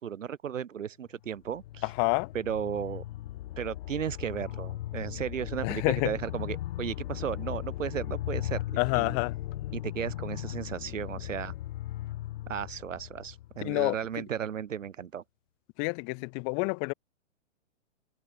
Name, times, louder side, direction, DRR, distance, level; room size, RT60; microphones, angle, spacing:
voice 1, 0.0-1.8 2.3-3.0 3.6-8.6 8.9-9.2 9.7-11.5 12.5-15.2, right 8 dB, 80° right, 3.8 m, -35 dB
sound 1, 1.2-14.1, left 14 dB, 50° left, 5.0 m, -38 dB
voice 2, 1.8-2.3 5.6-6.2 8.8-9.4 13.6-13.9 15.8-16.9, left 40 dB or more, 25° left, 1.2 m, -28 dB
hypercardioid pair, 155°, 37 cm